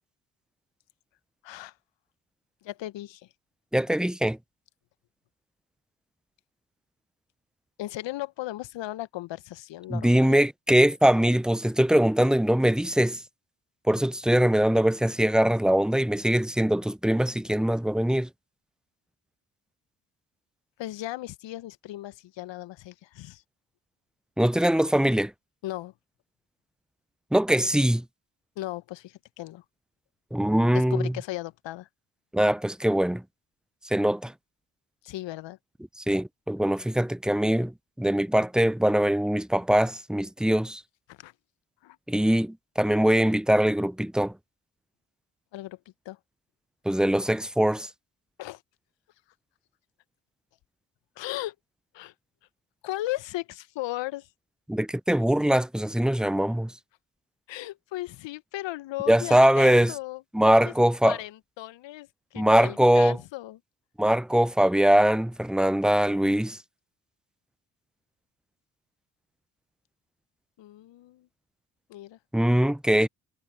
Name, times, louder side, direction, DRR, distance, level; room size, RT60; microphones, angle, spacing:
voice 1, 2.6-3.3 7.8-10.4 20.8-23.4 25.6-25.9 28.6-29.6 30.7-31.9 35.0-35.6 41.1-41.3 41.8-42.0 45.5-45.8 46.0-46.2 48.4-48.6 51.2-51.5 51.9-52.1 52.8-54.3 57.5-60.2 61.0-63.6 70.6-71.3 71.9-72.2, left 16 dB, 65° left, 1.2 m, -36 dB
voice 2, 3.7-4.4 9.9-13.2 13.9-18.3 24.4-25.3 27.3-28.0 30.3-31.1 32.3-33.2 33.8-34.3 36.0-40.8 42.1-44.3 46.8-47.9 54.7-56.7 59.1-59.9 60.3-61.2 62.4-63.2 64.0-66.6 72.3-73.1, right 1 dB, ahead, 0.6 m, -22 dB
hypercardioid pair, 45°, 47 cm